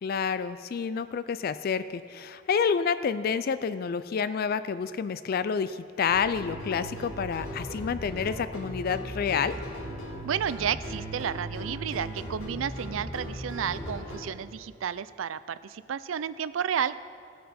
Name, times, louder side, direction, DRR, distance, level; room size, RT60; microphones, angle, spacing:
voice 1, 0.0-9.5, left 6 dB, 50° left, 14 dB, 0.3 m, -29 dB
sound 1, 6.1-14.2, equal, 85° left, 3.5 m, -38 dB
voice 2, 10.2-17.0, right 8 dB, 85° right, 15 dB, 0.4 m, -32 dB
17.5 x 9.3 x 4.3 m, 2.3 s
head